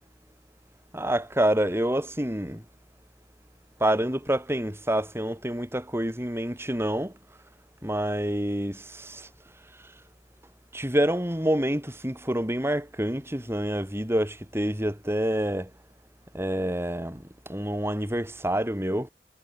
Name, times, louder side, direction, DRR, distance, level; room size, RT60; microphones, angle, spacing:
voice 1, 0.9-2.6 3.8-7.1 7.8-9.3 10.7-15.7 16.3-19.1, right 1 dB, 15° right, 7.6 m, -27 dB
head